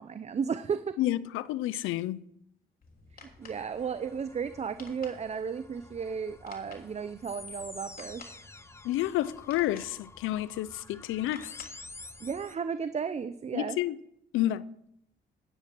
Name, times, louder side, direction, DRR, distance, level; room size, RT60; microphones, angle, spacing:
voice 1, 0.0-1.0 3.1-8.2 12.2-13.8, right 6 dB, 35° right, 0.6 m, -34 dB
voice 2, 1.0-2.2 8.8-11.5 13.5-14.0 14.3-14.7, left 14 dB, 90° left, 0.5 m, -30 dB
sound 1, 2.8-12.4, left 3 dB, 45° left, 3.3 m, -53 dB
sound 2, 3.4-12.6, left 2 dB, 15° left, 0.7 m, -50 dB
10.0 x 10.0 x 6.1 m
cardioid pair, 90°, 20 cm